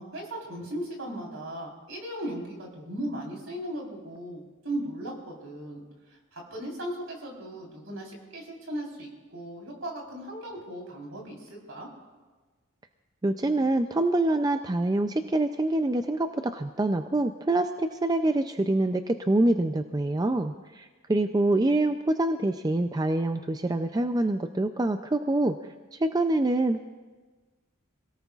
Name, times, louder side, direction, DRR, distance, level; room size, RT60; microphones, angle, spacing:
voice 1, 0.0-5.8 6.1-11.9, right 1 dB, 65° right, -1 dB, 3.8 m, -37 dB
voice 2, 13.2-25.6 25.9-26.8, right 2 dB, 20° right, 8 dB, 0.3 m, -25 dB
27.0 x 17.5 x 2.4 m, 1.3 s
head